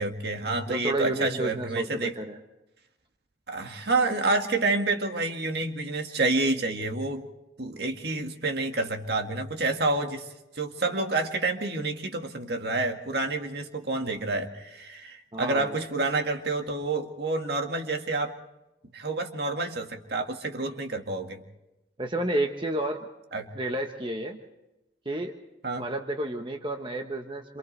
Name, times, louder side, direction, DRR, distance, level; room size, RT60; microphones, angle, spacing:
voice 1, 0.0-2.2 3.5-7.3 7.6-10.3 10.5-18.4 18.9-21.4 23.3-23.5 25.6-25.8, right 2 dB, 55° right, 4 dB, 1.9 m, -28 dB
voice 2, 0.7-2.4 15.3-15.8 22.0-23.0 23.5-24.4 25.0-25.3 25.8-27.6, right 1 dB, 25° right, 3 dB, 1.2 m, -31 dB
28.0 x 27.5 x 3.4 m, 0.96 s
head